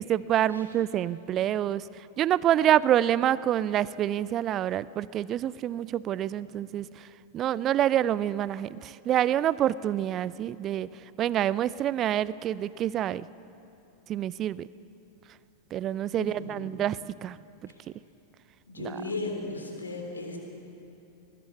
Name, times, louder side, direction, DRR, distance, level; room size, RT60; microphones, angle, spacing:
voice 1, 0.0-13.3 14.1-14.7 15.7-17.4 18.8-19.0, right 11 dB, 30° right, 19 dB, 0.4 m, -27 dB
voice 2, 16.2-16.7 17.7-17.8 18.7-20.4, left 2 dB, 75° left, 2 dB, 3.7 m, -36 dB
20.5 x 19.5 x 8.2 m, 2.8 s
figure-of-eight pair, 90°, 0 cm